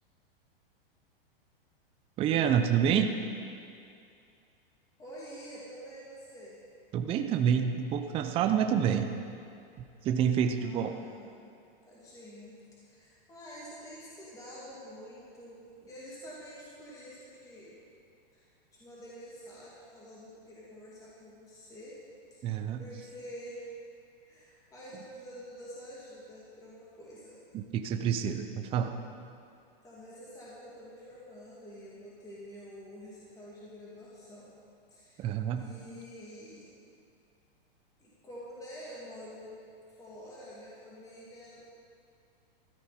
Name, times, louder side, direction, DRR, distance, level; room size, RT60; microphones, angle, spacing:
voice 1, 2.2-3.2 6.9-9.1 10.0-10.9 22.4-22.8 27.5-28.9 35.2-35.6, right 8 dB, 20° right, 6 dB, 0.6 m, -28 dB
voice 2, 5.0-6.6 10.6-11.6 11.8-17.8 18.3-22.0 22.3-22.5 22.8-23.7 24.3-27.4 29.8-34.6 34.9-36.7 38.0-39.5 39.9-41.6, equal, 10° left, -7 dB, 2.6 m, -48 dB
15.5 x 13.0 x 4.3 m, 2.5 s
hypercardioid pair, 150°, 29 cm